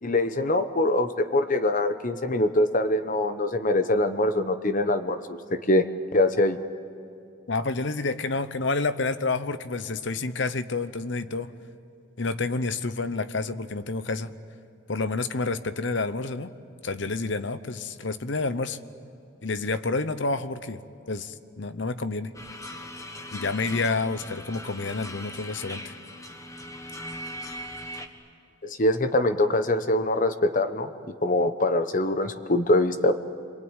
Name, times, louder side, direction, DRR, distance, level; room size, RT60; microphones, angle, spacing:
voice 1, 0.0-5.9 6.1-6.6 28.6-30.9 31.2-33.3, left 1 dB, 40° left, 10 dB, 1.0 m, -23 dB
voice 2, 7.5-11.5 12.2-14.3 14.9-16.5 16.8-18.8 19.4-22.3 23.3-25.9, left 3 dB, 60° left, 12 dB, 0.9 m, -29 dB
sound 1, 22.3-28.1, left 1 dB, 15° left, 1.3 m, -39 dB
27.5 x 22.5 x 9.1 m, 2.6 s
head